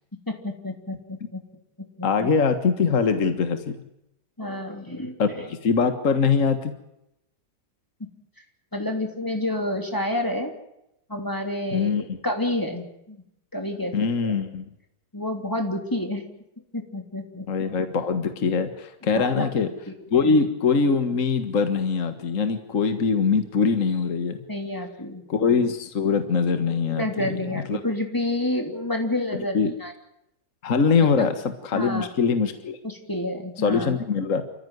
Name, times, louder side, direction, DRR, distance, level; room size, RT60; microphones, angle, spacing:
voice 1, 0.3-1.4 2.0-2.3 4.4-5.5 8.7-10.5 11.1-13.2 13.5-13.9 14.3-14.4 15.1-16.2 16.7-17.5 19.1-20.4 24.5-25.2 26.9-29.9 31.2-31.3 31.7-32.1 32.8-34.0, left 1 dB, 10° left, 3 dB, 3.2 m, -29 dB
voice 2, 2.0-3.8 5.2-5.3 5.6-6.7 11.7-12.2 13.9-14.7 17.5-19.7 20.1-24.4 25.3-27.8 29.5-29.7 30.6-32.8 33.6-34.4, left 5 dB, 50° left, 8 dB, 1.8 m, -23 dB
27.5 x 15.0 x 9.6 m, 0.83 s
omnidirectional pair, 1.8 m